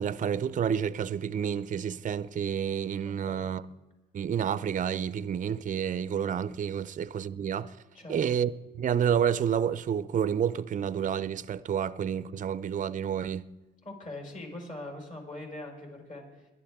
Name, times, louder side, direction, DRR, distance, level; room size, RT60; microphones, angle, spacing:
voice 1, 0.0-3.6 4.1-7.7 8.1-13.5, right 8 dB, 40° right, 0.5 m, -29 dB
voice 2, 3.0-3.5 7.9-8.2 13.8-16.5, left 2 dB, 40° left, 5.0 m, -42 dB
22.5 x 12.0 x 3.6 m
cardioid pair, 90°, 20 cm